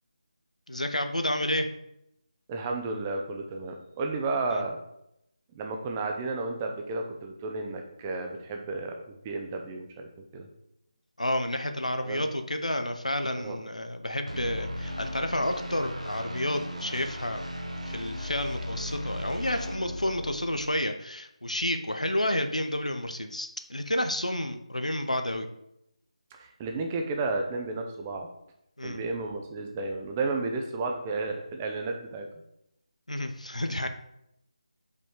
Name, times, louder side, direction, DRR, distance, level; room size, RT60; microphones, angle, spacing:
voice 1, 0.7-1.7 4.5-4.6 11.2-17.4 17.9-25.5 28.8-29.0 33.1-33.9, left 1 dB, 80° left, 7 dB, 0.8 m, -30 dB
voice 2, 2.5-4.8 5.6-10.5 12.0-12.2 13.4-13.6 26.3-28.3 28.8-32.3, right 3 dB, 15° right, 3 dB, 0.5 m, -32 dB
sound 1, 14.3-20.7, equal, 80° right, 1.2 m, -37 dB
5.3 x 4.2 x 4.8 m, 0.80 s
figure-of-eight pair, 160°, 4 cm